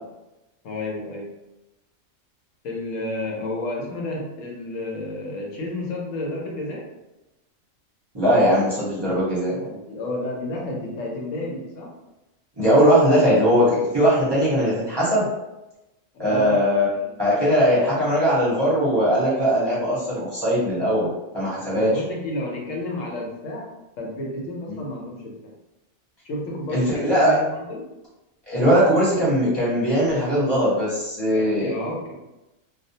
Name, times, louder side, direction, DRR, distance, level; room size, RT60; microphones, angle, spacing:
voice 1, 0.6-1.3 2.6-6.9 8.9-9.1 9.5-11.9 16.1-16.6 16.9-17.5 21.7-23.7 24.0-25.5 26.2-27.9 31.3-32.2, left 1 dB, 85° left, -1 dB, 1.0 m, -31 dB
voice 2, 8.1-9.5 12.6-15.3 16.2-16.9 17.2-21.1 21.3-21.9 24.7-24.8 26.7-27.4 28.5-31.7, equal, 25° right, -10 dB, 0.6 m, -20 dB
2.4 x 2.0 x 2.7 m, 0.97 s
omnidirectional pair, 1.3 m